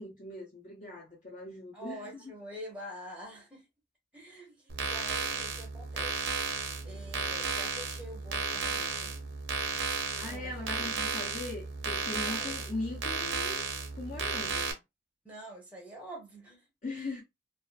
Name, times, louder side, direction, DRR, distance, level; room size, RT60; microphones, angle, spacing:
voice 1, 0.0-2.3 10.1-13.6 13.9-14.8 16.8-17.2, left 2 dB, 40° left, 0.7 m, -40 dB
voice 2, 1.7-3.7 4.1-6.2 6.8-9.2 10.2-10.9 12.2-12.6 15.2-16.7, equal, 5° right, 0.7 m, -46 dB
sound 1, 4.7-14.7, right 5 dB, 70° right, 0.7 m, -34 dB
2.5 x 2.4 x 2.3 m
head